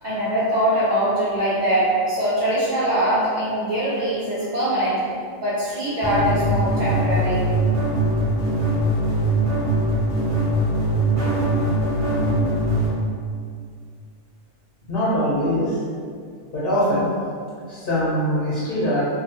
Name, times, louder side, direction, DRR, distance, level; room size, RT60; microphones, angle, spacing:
voice 1, 0.0-5.0 5.4-7.5, right 1 dB, 70° right, -10 dB, 0.4 m, -22 dB
sound 1, 6.0-12.9, right 1 dB, 10° right, 1.0 m, -21 dB
voice 2, 14.9-15.8 16.5-17.1 17.7-19.1, equal, 55° left, -8 dB, 0.7 m, -22 dB
2.5 x 2.3 x 2.7 m, 2.2 s
omnidirectional pair, 1.4 m